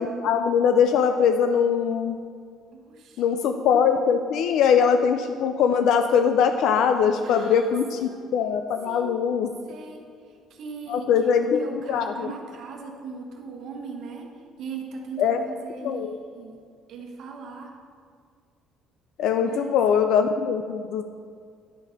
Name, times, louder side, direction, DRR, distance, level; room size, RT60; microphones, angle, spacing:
voice 1, 0.0-2.2 3.2-9.5 10.9-12.3 15.2-15.4 15.8-16.2 19.2-21.0, left 7 dB, 70° left, 7 dB, 0.4 m, -22 dB
voice 2, 2.7-3.4 7.2-8.3 8.8-9.2 9.7-14.3 14.6-16.0 16.3-16.6 16.9-17.7 19.4-19.7, right 4 dB, 60° right, 1 dB, 1.1 m, -40 dB
11.0 x 4.1 x 5.0 m, 2.2 s
cardioid pair, 135°, 0 cm